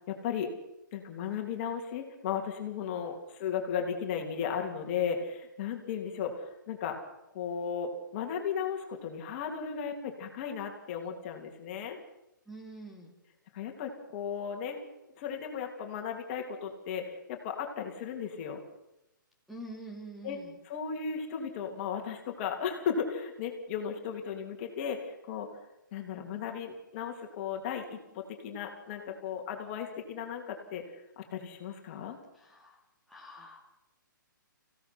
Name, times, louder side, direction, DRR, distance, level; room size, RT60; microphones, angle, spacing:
voice 1, 0.1-0.5 0.9-7.0 7.3-12.0 13.5-14.8 15.2-18.6 20.2-20.4 20.7-25.5 25.9-30.8 31.2-32.2, left 7 dB, 35° left, 3 dB, 3.3 m, -35 dB
voice 2, 12.5-13.1 19.5-20.6 32.3-32.8 33.1-33.6, right 1 dB, ahead, 0 dB, 3.1 m, -46 dB
25.5 x 17.0 x 6.2 m, 0.88 s
figure-of-eight pair, 130°, 11 cm